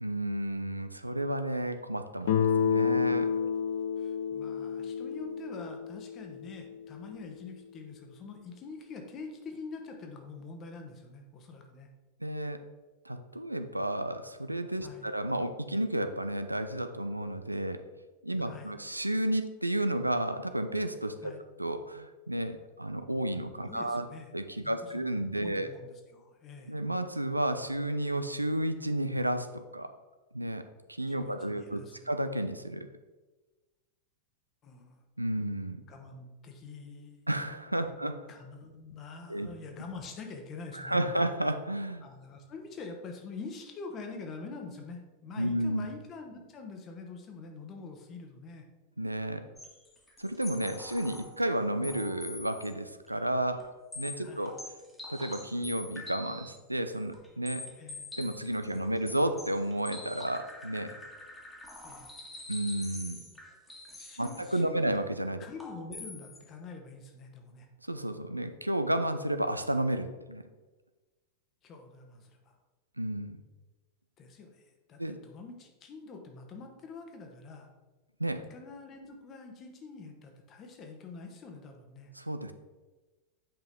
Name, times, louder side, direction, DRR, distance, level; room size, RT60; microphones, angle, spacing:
voice 1, 0.0-3.3 12.2-12.6 13.1-17.8 18.2-21.3 21.6-24.0 24.3-25.7 26.7-29.9 30.3-30.6 31.0-32.9 35.2-35.8 37.3-38.1 39.3-39.5 40.7-42.1 45.4-45.9 49.0-49.5 50.2-53.7 54.0-54.6 55.1-57.7 58.2-60.9 62.5-63.2 64.2-65.4 67.9-70.4 73.0-73.4 75.0-75.2 78.2-78.5 82.2-82.5, right 1 dB, 85° right, 10 dB, 0.5 m, -32 dB
Guitar, 2.3-7.1, left 7 dB, 55° left, 0.6 m, -30 dB
voice 2, 4.0-11.9 14.8-15.1 18.4-18.7 21.2-21.4 23.6-24.3 24.6-26.8 31.1-32.2 34.6-35.0 35.9-37.2 37.9-38.0 38.3-41.2 42.0-48.7 54.2-54.5 57.8-58.1 58.7-58.9 61.8-62.1 63.8-65.0 65.4-67.7 71.6-72.5 74.2-77.7 78.5-82.1, left 4 dB, 30° left, 4 dB, 1.3 m, -45 dB
sound 1, 49.6-51.4 51.8-52.7 53.1-53.2 53.6-53.7 53.9-56.6 56.9-64.5 65.6-66.5, left 2 dB, 10° left, 1.6 m, -45 dB
9.0 x 5.4 x 3.6 m, 1.2 s
figure-of-eight pair, 90°, 0 cm